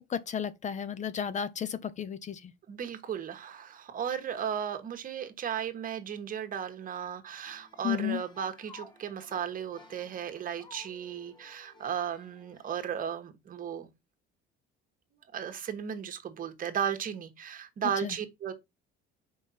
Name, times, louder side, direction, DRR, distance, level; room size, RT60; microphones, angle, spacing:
voice 1, 0.0-2.5 7.8-8.2 18.0-18.2, left 8 dB, 35° left, 0.6 m, -33 dB
voice 2, 2.7-13.9 15.3-18.5, right 8 dB, 45° right, 1.3 m, -35 dB
sound 1, 7.5-12.9, left 1 dB, 20° left, 1.5 m, -55 dB
5.5 x 4.8 x 4.2 m
cardioid pair, 115°, 21 cm